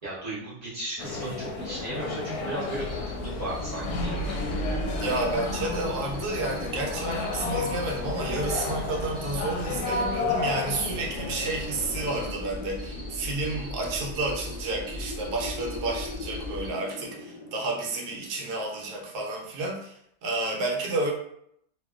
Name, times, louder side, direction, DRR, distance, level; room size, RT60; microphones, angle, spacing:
voice 1, 0.0-4.4, right 1 dB, 35° right, -9 dB, 0.7 m, -35 dB
sound 1, 1.0-12.3, left 3 dB, 70° left, 1.0 m, -32 dB
sound 2, 2.8-16.7, left 1 dB, 5° left, 0.9 m, -39 dB
voice 2, 5.0-21.1, right 2 dB, 75° right, -1 dB, 1.1 m, -31 dB
Wind, 10.7-19.4, left 2 dB, 35° left, 0.5 m, -42 dB
2.8 x 2.5 x 2.3 m, 0.74 s
omnidirectional pair, 1.8 m